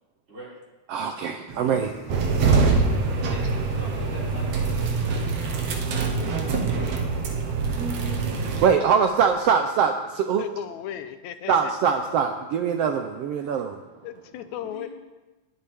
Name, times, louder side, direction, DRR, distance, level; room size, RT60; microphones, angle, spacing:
voice 1, 0.3-0.6 3.1-5.6 14.6-14.9, equal, 50° right, -9 dB, 6.1 m, -43 dB
voice 2, 0.9-1.9 8.6-10.4 11.5-13.8, right 6 dB, 80° right, 6 dB, 1.3 m, -23 dB
sound 1, 1.5-9.4, right 2 dB, 30° right, 3.2 m, -44 dB
sound 2, 2.1-8.7, right 4 dB, 65° right, 2.2 m, -24 dB
voice 3, 10.4-11.7 14.0-14.9, left 11 dB, 75° left, 10 dB, 1.9 m, -36 dB
19.0 x 8.6 x 3.5 m, 1.1 s
omnidirectional pair, 3.4 m